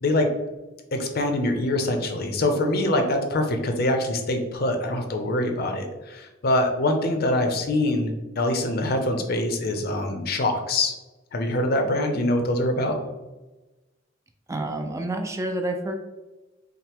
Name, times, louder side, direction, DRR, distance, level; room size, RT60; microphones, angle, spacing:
voice 1, 0.9-10.9 11.3-13.0, left 1 dB, 55° left, 4 dB, 0.6 m, -24 dB
voice 2, 14.5-16.0, right 1 dB, 15° right, 4 dB, 0.3 m, -28 dB
5.6 x 2.0 x 3.4 m, 1.1 s
head